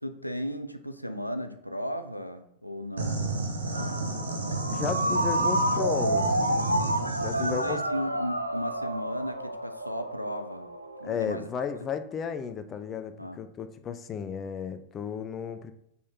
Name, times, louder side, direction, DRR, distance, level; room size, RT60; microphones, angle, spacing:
voice 1, 0.0-3.2 6.9-10.7 11.0-11.7 13.2-13.4, equal, 90° left, 8 dB, 0.5 m, -35 dB
sound 1, 3.0-7.8, right 2 dB, 70° right, 1.3 m, -31 dB
Ringtone, 3.7-11.2, right 1 dB, 85° right, 0.5 m, -30 dB
voice 2, 4.7-6.4 7.2-7.8 11.0-15.7, left 6 dB, 25° left, 9 dB, 0.6 m, -34 dB
6.4 x 5.4 x 4.3 m, 0.77 s
figure-of-eight pair, 90°, 0 cm